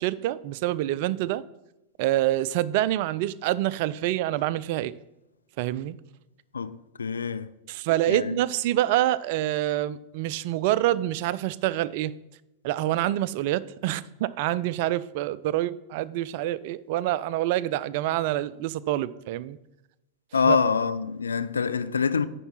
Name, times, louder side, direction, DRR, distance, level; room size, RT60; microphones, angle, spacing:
voice 1, 0.0-1.4 2.0-4.9 5.6-6.0 7.7-12.1 12.6-19.6 20.5-20.6, right 14 dB, 50° right, 0.3 m, -26 dB
voice 2, 6.5-7.5 8.1-8.4 20.3-22.3, left 5 dB, 75° left, 0.4 m, -25 dB
9.8 x 4.6 x 5.7 m
figure-of-eight pair, 90°, 0 cm